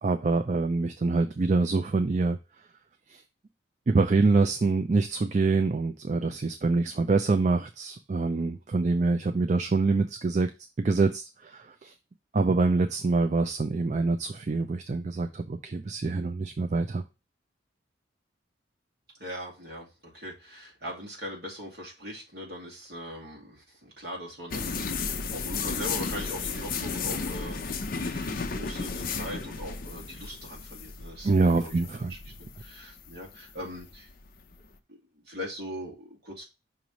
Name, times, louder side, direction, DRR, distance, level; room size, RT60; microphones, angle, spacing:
voice 1, 0.0-2.4 3.1-3.2 3.9-10.5 10.8-11.9 12.3-17.0 31.2-32.1, right 3 dB, 35° right, 7 dB, 0.4 m, -25 dB
voice 2, 19.2-32.2 32.6-34.1 34.9-35.0 35.2-36.4, equal, 55° right, -1 dB, 2.2 m, -41 dB
sound 1, 24.5-34.7, left 5 dB, 45° left, 0.6 m, -34 dB
5.9 x 3.1 x 5.2 m, 0.27 s
head